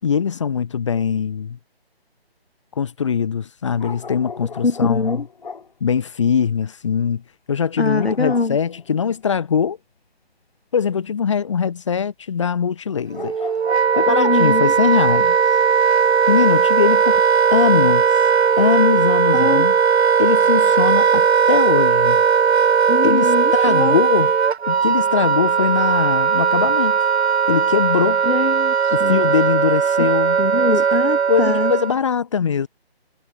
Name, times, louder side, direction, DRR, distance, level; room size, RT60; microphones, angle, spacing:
voice 1, 0.0-1.6 2.8-5.2 5.8-7.2 7.5-9.8 10.7-13.3 14.0-15.4 16.3-17.2 17.5-18.0 18.6-19.7 20.2-22.2 23.0-24.3 24.7-27.0 27.5-28.2 28.9-30.4 31.3-32.7, left 7 dB, 30° left, 5.3 m, -21 dB
sound 1, 3.8-5.7 8.0-9.2 12.9-14.5 14.8-14.9, left 5 dB, 45° left, 6.0 m, -37 dB
voice 2, 4.6-5.3 7.8-8.6 14.1-14.7 19.3-19.7 22.9-24.0 28.2-29.2 30.0-30.1 30.4-31.7, left 3 dB, 80° left, 7.0 m, -22 dB
Wind instrument woodwind instrument, 13.1-32.0, right 6 dB, 85° right, 0.8 m, -17 dB
hypercardioid pair, 175°, 31 cm